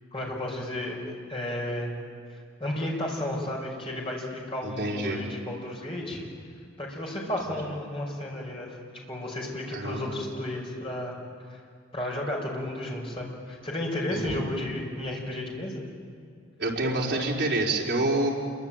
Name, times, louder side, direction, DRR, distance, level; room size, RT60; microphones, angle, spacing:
voice 1, 0.1-1.9 2.3-6.2 6.8-8.8 9.1-11.2 11.9-15.8, left 1 dB, 25° left, -1 dB, 5.5 m, -33 dB
voice 2, 4.6-5.3 9.7-10.2 14.1-14.4 16.6-18.3, right 2 dB, 55° right, -3 dB, 4.6 m, -27 dB
28.0 x 23.5 x 9.0 m, 2.2 s
head